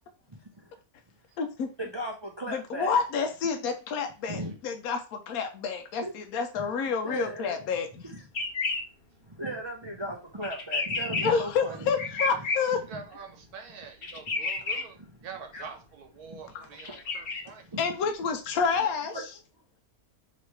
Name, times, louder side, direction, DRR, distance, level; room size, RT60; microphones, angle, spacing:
voice 1, 0.3-0.6 1.8-2.9 4.3-4.6 6.0-6.1 7.0-7.5 8.0-8.2 9.3-11.9 12.9-13.0 14.1-14.2 14.6-15.2 15.5-15.7 16.3-17.0 17.7-17.8 19.1-19.2, right 1 dB, 45° right, 0 dB, 0.3 m, -37 dB
voice 2, 1.4-1.7 2.5-8.0 11.2-12.8 16.5-16.7 17.8-19.2, left 5 dB, 80° left, 5 dB, 1.1 m, -29 dB
sound 1, 8.3-8.8 10.4-11.3 12.0-12.6 14.0-14.8 16.8-17.4, left 3 dB, 50° left, 0.8 m, -30 dB
voice 3, 12.9-15.0 15.2-17.6, right 5 dB, 85° right, 4 dB, 1.5 m, -45 dB
3.1 x 2.9 x 4.6 m, 0.32 s
omnidirectional pair, 1.6 m